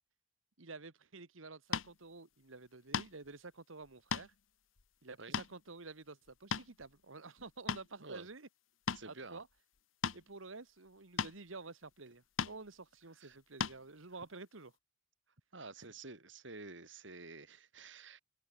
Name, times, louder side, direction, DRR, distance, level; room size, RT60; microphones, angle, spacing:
voice 1, 0.6-4.3 5.0-8.5 9.1-9.5 10.1-14.7 15.8-15.9, right 3 dB, 85° right, 1.6 m, -50 dB
sound 1, 1.7-1.9 2.9-3.3 3.9-4.3 4.8-4.9 5.3-5.5 6.3-6.8 7.4-7.9 8.9-9.1 10.0-10.2 11.2-11.4 12.4-12.6 13.6-13.8, left 6 dB, 85° left, 1.1 m, -36 dB
voice 2, 8.9-9.4 13.2-13.4 15.5-18.2, right 3 dB, 65° right, 3.0 m, -50 dB
head